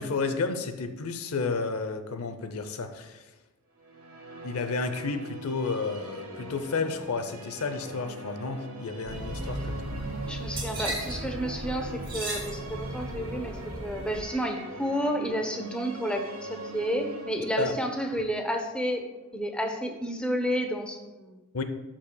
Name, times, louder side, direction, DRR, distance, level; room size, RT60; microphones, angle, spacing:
voice 1, 0.0-3.2 4.4-10.0 17.6-17.7 18.1-18.2 21.5-21.6, left 4 dB, 75° left, 8 dB, 0.7 m, -31 dB
sound 1, 3.7-19.8, right 2 dB, 75° right, 1.5 m, -43 dB
sound 2, 9.1-14.2, right 1 dB, 20° right, 2.3 m, -35 dB
voice 2, 10.3-19.1 19.3-21.4, equal, 5° left, 3 dB, 0.8 m, -31 dB
12.5 x 5.9 x 2.3 m, 1.1 s
head